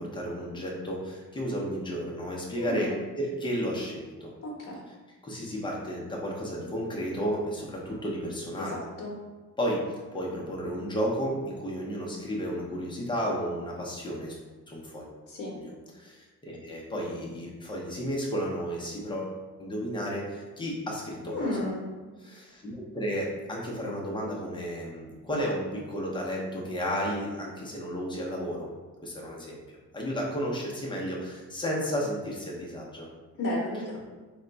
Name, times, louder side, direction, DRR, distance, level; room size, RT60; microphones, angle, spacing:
voice 1, 0.0-2.9 3.2-4.3 5.2-8.8 9.6-9.8 10.1-14.4 14.7-15.1 15.6-21.5 22.2-28.7 29.0-29.6 29.9-33.1, equal, 15° left, -3 dB, 0.7 m, -33 dB
voice 2, 2.6-3.0 4.4-4.8 8.6-9.2 15.3-15.5 21.3-21.8 33.4-34.0, left 1 dB, 45° left, -3 dB, 0.9 m, -33 dB
4.3 x 2.3 x 3.8 m, 1.3 s
cardioid pair, 155°, 32 cm